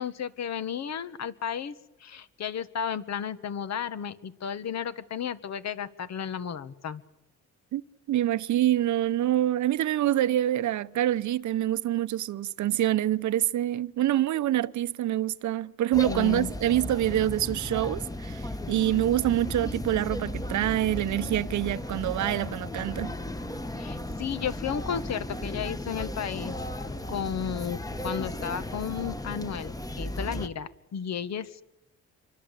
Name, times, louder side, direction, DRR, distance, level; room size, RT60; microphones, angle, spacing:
voice 1, 0.0-1.7 2.0-7.0 16.1-16.5 23.8-26.5 27.1-27.8 28.0-31.6, left 8 dB, 60° left, 1.6 m, -33 dB
voice 2, 8.1-23.1, right 13 dB, 70° right, 0.9 m, -26 dB
sound 1, 15.9-30.5, left 1 dB, 10° left, 1.3 m, -35 dB
26.5 x 24.0 x 8.4 m
cardioid pair, 90°, 30 cm